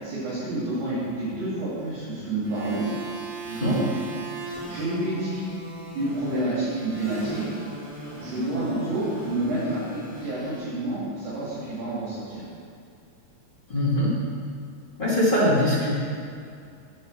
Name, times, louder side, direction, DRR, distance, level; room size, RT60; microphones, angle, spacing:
voice 1, 0.0-2.9 3.5-3.8 4.7-5.5 5.9-7.5 8.1-12.4, right 2 dB, 60° right, -10 dB, 4.0 m, -29 dB
sound 1, 2.4-10.6, right 2 dB, 15° right, 2.3 m, -39 dB
voice 2, 13.7-14.2 15.0-15.9, left 1 dB, 30° left, -8 dB, 0.9 m, -22 dB
7.7 x 7.5 x 7.4 m, 2.4 s
omnidirectional pair, 4.1 m